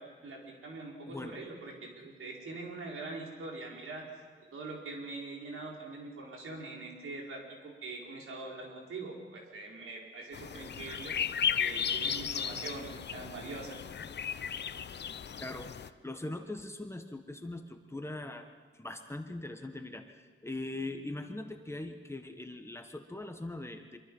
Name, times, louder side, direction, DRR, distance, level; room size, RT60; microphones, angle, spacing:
voice 1, 0.0-4.0 4.5-11.1 11.6-13.8, right 3 dB, 90° right, -1 dB, 5.0 m, -43 dB
sound 1, 10.3-15.9, left 8 dB, 55° left, 0.7 m, -35 dB
voice 2, 15.4-18.5 18.8-24.0, left 2 dB, 10° left, 5 dB, 1.5 m, -41 dB
26.0 x 24.0 x 5.6 m, 1.5 s
wide cardioid pair, 135°, 21 cm